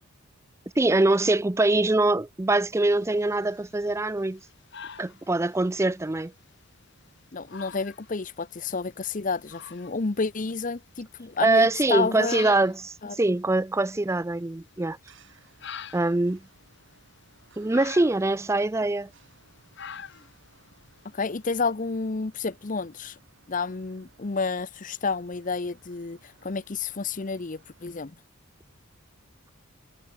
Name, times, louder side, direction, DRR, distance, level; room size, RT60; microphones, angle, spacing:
voice 1, 0.8-4.4 5.0-6.3 11.4-15.0 15.9-16.4 17.6-19.1, right 2 dB, 15° right, 0.4 m, -23 dB
sound 1, 3.0-21.7, left 7 dB, 55° left, 1.8 m, -48 dB
voice 2, 7.3-12.5 13.0-13.2 21.1-23.2 23.5-28.2, left 4 dB, 35° left, 0.7 m, -30 dB
sound 2, 15.0-28.0, right 4 dB, 60° right, 3.3 m, -61 dB
head